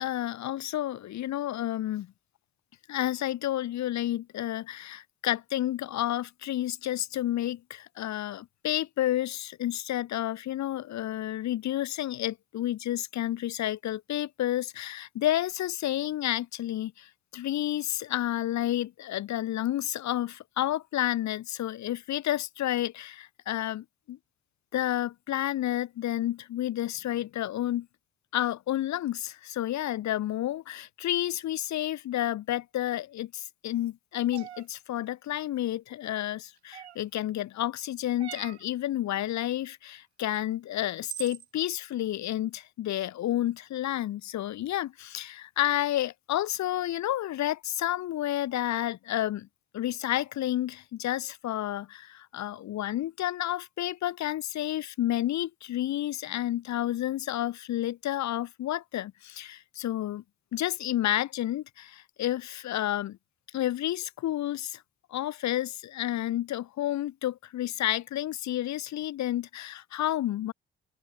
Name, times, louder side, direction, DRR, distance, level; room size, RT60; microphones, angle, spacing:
voice 1, 0.0-2.1 2.9-24.2 24.7-27.9 28.3-49.5 49.7-60.2 60.5-63.2 63.5-64.8 65.1-70.5, left 13 dB, 60° left, 4.2 m, -30 dB
sound 1, 34.3-34.7 36.7-37.2 38.2-38.7 40.3-40.4 41.0-41.5, right 11 dB, 85° right, 5.5 m, -41 dB
open air
figure-of-eight pair, 45°, 32 cm